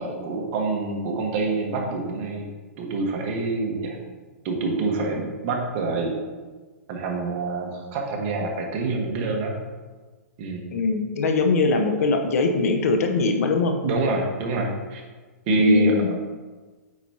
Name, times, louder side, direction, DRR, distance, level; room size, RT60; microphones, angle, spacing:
voice 1, 0.0-2.5 2.8-4.0 4.4-6.1 6.9-9.6 10.4-10.6 13.8-15.0 15.5-16.0, right 3 dB, 40° right, 0 dB, 1.3 m, -26 dB
voice 2, 10.7-13.7 15.5-16.1, left 3 dB, 70° left, 5 dB, 0.9 m, -22 dB
8.6 x 4.5 x 2.8 m, 1.4 s
hypercardioid pair, 140°, 8 cm